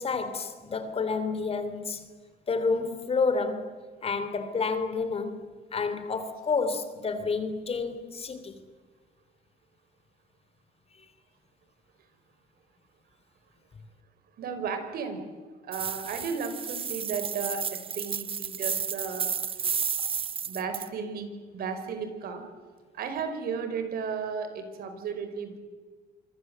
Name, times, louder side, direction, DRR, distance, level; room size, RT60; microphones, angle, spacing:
voice 1, 0.0-2.1 2.5-5.5 5.7-8.6 11.0-11.1, left 4 dB, 35° left, 3.1 m, -30 dB
voice 2, 14.4-15.2 15.6-19.5 20.4-22.4 22.9-25.6, right 6 dB, 65° right, 5.0 m, -34 dB
sound 1, 15.7-20.9, right 7 dB, 35° right, 0.8 m, -32 dB
26.5 x 23.0 x 7.9 m
cardioid pair, 110°, 17 cm